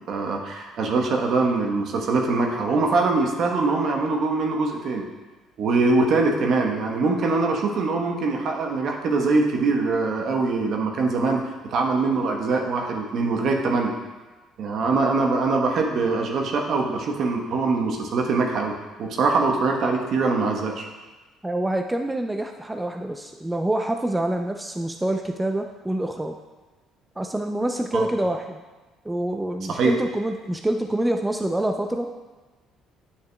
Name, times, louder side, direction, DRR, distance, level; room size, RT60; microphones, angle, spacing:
voice 1, 0.1-5.0 5.6-11.4 11.7-13.9 14.6-18.7 19.0-20.9 27.9-28.0 29.7-29.9, right 3 dB, 60° right, 1 dB, 1.1 m, -23 dB
voice 2, 21.4-26.4 27.2-28.6 29.0-32.1, right 1 dB, 15° right, 4 dB, 0.5 m, -26 dB
9.5 x 6.5 x 2.3 m, 1.2 s
hypercardioid pair, 60°, 0 cm